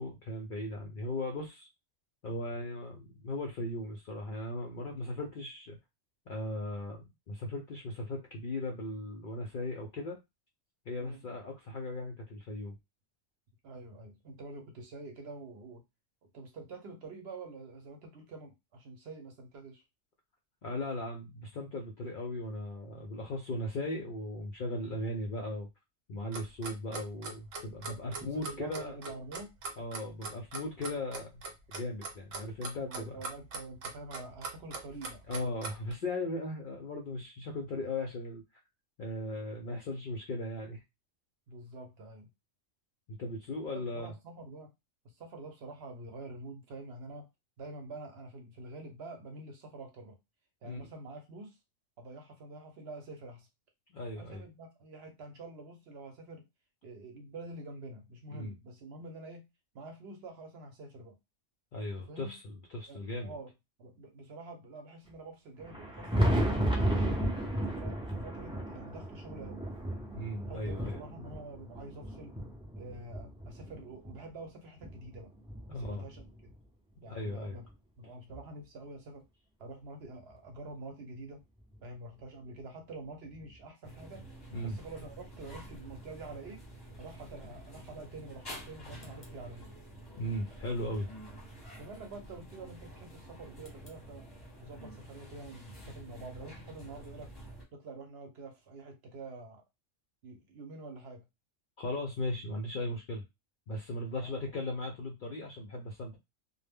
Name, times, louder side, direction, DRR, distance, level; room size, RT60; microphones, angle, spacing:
voice 1, 0.0-1.7 2.2-5.8 6.3-10.2 10.9-12.8 20.6-25.7 26.1-28.9 29.8-31.4 31.7-33.2 35.3-38.4 39.0-40.8 43.1-44.1 50.6-50.8 53.9-54.4 58.3-58.5 61.7-63.3 70.1-71.0 75.7-76.1 77.1-77.6 84.5-84.8 90.2-91.1 101.8-103.3 103.7-106.2, left 1 dB, 65° left, 1 dB, 0.5 m, -37 dB
voice 2, 13.6-15.8 16.3-19.8 28.1-29.5 32.8-35.2 41.5-42.3 43.7-44.7 45.0-47.3 47.6-50.2 50.6-51.6 52.0-53.5 54.2-56.4 56.8-59.4 59.7-61.2 62.1-62.3 62.9-63.5 63.8-66.5 66.8-69.7 70.5-72.3 72.8-75.3 75.7-76.5 77.0-77.7 78.0-79.2 79.6-81.4 81.8-84.3 84.6-86.6 87.0-89.7 91.8-94.2 94.6-97.3 97.7-99.6 100.2-101.2 104.1-104.4, right 2 dB, 60° right, 4 dB, 0.8 m, -47 dB
Clock, 26.3-35.9, right 3 dB, 85° right, 1.1 m, -41 dB
Thunder, 65.6-74.2 74.8-76.5 77.7-77.8 78.3-78.4 80.3-80.4 81.7-81.8 83.4-83.5, right 1 dB, 5° right, 0.4 m, -34 dB
sound 1, 83.8-97.6, right 1 dB, 25° left, 0.7 m, -49 dB
2.1 x 2.1 x 3.4 m, 0.22 s
omnidirectional pair, 1.3 m